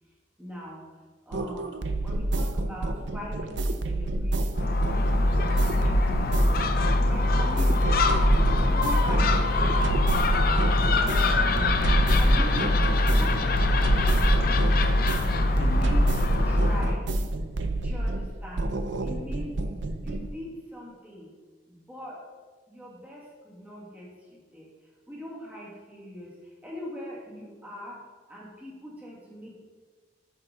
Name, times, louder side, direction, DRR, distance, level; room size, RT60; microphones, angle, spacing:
voice 1, 0.4-0.9 1.3-1.8 2.0-5.1 5.5-11.8 12.2-14.4 15.5-17.1 17.7-18.7 19.0-19.6 20.0-21.3 21.7-22.2 22.7-24.7 25.1-28.0 28.3-29.5, equal, 10° right, -5 dB, 1.9 m, -41 dB
sound 1, 1.3-20.3, right 2 dB, 75° right, 0.6 m, -27 dB
Gull seagull, 4.5-17.0, left 2 dB, 50° left, 0.6 m, -23 dB
8.8 x 5.9 x 3.9 m, 1.4 s
head